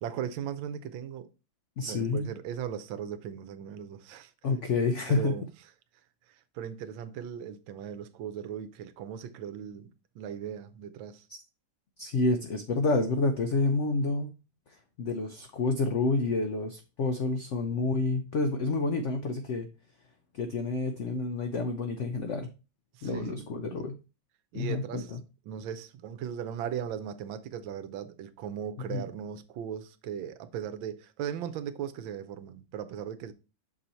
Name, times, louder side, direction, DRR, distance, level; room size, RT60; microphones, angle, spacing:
voice 1, 0.0-1.3 1.8-4.3 5.1-5.4 6.5-11.3 22.9-23.9 24.5-25.1 25.5-33.3, right 9 dB, 85° right, 1.4 m, -38 dB
voice 2, 1.8-2.3 4.4-5.3 12.0-14.3 15.0-19.7 20.3-22.5 23.0-24.0 24.5-25.2 28.9-29.0, left 3 dB, 80° left, 0.6 m, -29 dB
6.2 x 4.0 x 4.3 m
omnidirectional pair, 2.1 m